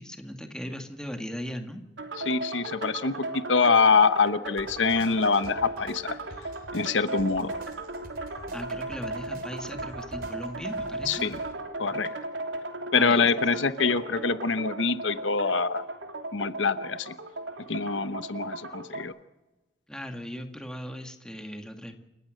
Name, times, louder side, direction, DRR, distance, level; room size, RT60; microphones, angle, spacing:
voice 1, 0.0-1.8 8.5-11.3 12.9-13.3 19.9-22.0, equal, 5° left, 5 dB, 2.1 m, -38 dB
sound 1, 2.0-19.0, right 2 dB, 80° right, 3.2 m, -36 dB
voice 2, 2.2-6.2 6.7-7.5 11.1-11.4 11.8-12.1 12.9-15.8 16.3-17.1 17.7-19.1, left 4 dB, 85° left, 12 dB, 1.0 m, -25 dB
sound 2, 4.6-11.5, right 1 dB, 55° right, 3.5 m, -49 dB
29.0 x 15.5 x 6.6 m, 1.0 s
head